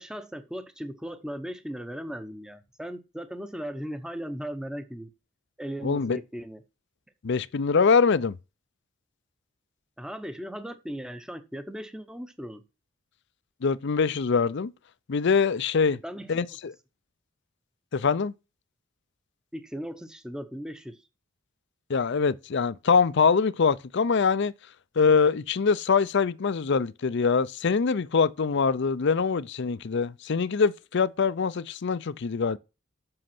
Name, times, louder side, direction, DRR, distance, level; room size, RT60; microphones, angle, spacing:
voice 1, 0.0-5.1 5.6-6.6 10.0-12.6 16.0-16.3 19.5-21.0, equal, 5° right, 0.7 m, -37 dB
voice 2, 5.8-6.2 7.2-8.4 13.6-14.7 15.1-16.0 16.3-16.7 17.9-18.3 21.9-24.5 25.0-32.6, left 5 dB, 55° left, 0.5 m, -24 dB
7.7 x 6.5 x 6.0 m
head